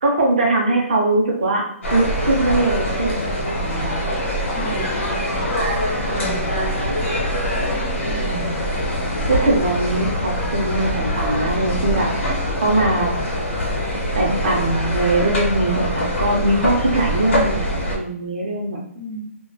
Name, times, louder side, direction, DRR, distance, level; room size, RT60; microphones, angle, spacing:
voice 1, 0.0-1.6 1.9-4.0 8.2-8.8 9.3-12.1 12.6-13.1 14.1-18.8, right 2 dB, 35° right, -1 dB, 0.5 m, -21 dB
sound 1, 1.8-18.0, equal, 60° left, 0.9 m, -23 dB
voice 2, 4.5-5.6 6.1-6.6 8.0-8.3 18.9-19.2, equal, 35° left, -2 dB, 0.5 m, -34 dB
2.2 x 2.1 x 2.6 m, 0.65 s
hypercardioid pair, 180°, 7 cm